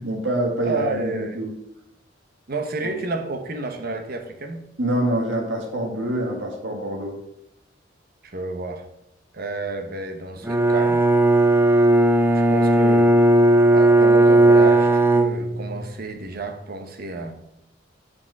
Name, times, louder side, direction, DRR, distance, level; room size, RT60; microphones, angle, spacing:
voice 1, 0.0-1.5 2.8-2.9 4.8-7.2, right 1 dB, 90° right, 0 dB, 1.8 m, -26 dB
voice 2, 0.6-1.4 2.5-4.7 8.2-8.8 9.3-11.0 12.3-13.1 13.7-17.3, right 3 dB, 55° right, 5 dB, 1.0 m, -30 dB
Bowed string instrument, 10.5-15.9, right 1 dB, 10° right, 0.4 m, -16 dB
8.4 x 5.2 x 4.7 m, 0.81 s
head